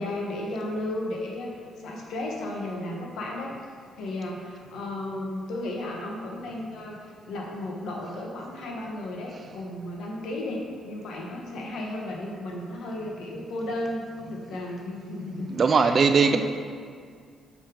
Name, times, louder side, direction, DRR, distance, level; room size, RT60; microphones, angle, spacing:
voice 1, 0.0-1.5 1.8-3.5 4.0-16.4, left 1 dB, 75° left, -1 dB, 1.1 m, -34 dB
voice 2, 15.5-16.4, right 5 dB, 45° right, 8 dB, 0.3 m, -19 dB
5.6 x 4.6 x 4.9 m, 2.1 s
cardioid pair, 90°, 0 cm